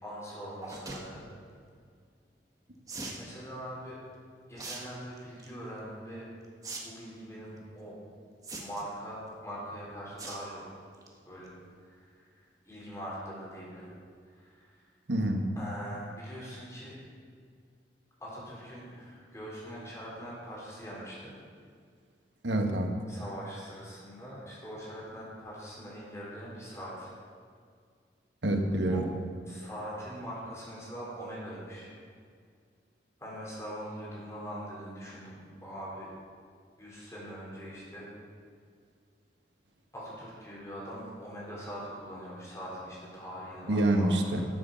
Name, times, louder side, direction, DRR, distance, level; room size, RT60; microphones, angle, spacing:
voice 1, 0.0-1.3 3.2-4.0 4.5-6.3 6.8-8.0 8.6-10.7 11.3-11.5 11.8-13.9 14.3-14.8 15.6-17.0 18.2-21.3 23.1-27.1 28.9-29.1 29.5-31.9 33.2-36.1 36.8-38.1 39.9-44.5, equal, 15° left, -6 dB, 3.9 m, -42 dB
sound 1, 0.6-1.0 2.9-3.2 4.6-4.8 5.2-5.5 6.6-6.8 7.1-7.2 8.4-8.9 10.2-10.4 10.8-11.1 11.5-11.6 11.7-11.8, right 3 dB, 20° right, 1.3 m, -40 dB
voice 2, 15.1-15.4 22.4-22.9 28.4-29.0 43.7-44.4, right 1 dB, 90° right, 4 dB, 1.4 m, -26 dB
12.5 x 7.5 x 7.0 m, 2.1 s
head